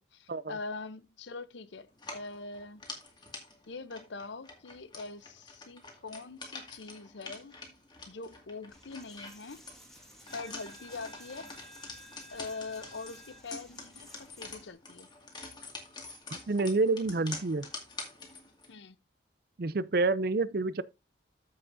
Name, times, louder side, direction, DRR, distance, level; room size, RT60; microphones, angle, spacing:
voice 1, 0.0-1.9 2.1-2.8 3.7-7.6 8.1-9.6 10.3-11.5 12.3-15.1 18.7-19.0, left 3 dB, 80° left, 0.7 m, -43 dB
sound 1, 1.9-18.7, left 3 dB, 25° left, 2.0 m, -46 dB
Coin (dropping), 8.7-14.7, equal, ahead, 2.2 m, -53 dB
voice 2, 16.3-17.7 19.6-20.8, right 3 dB, 55° right, 0.5 m, -28 dB
14.0 x 5.9 x 2.6 m
head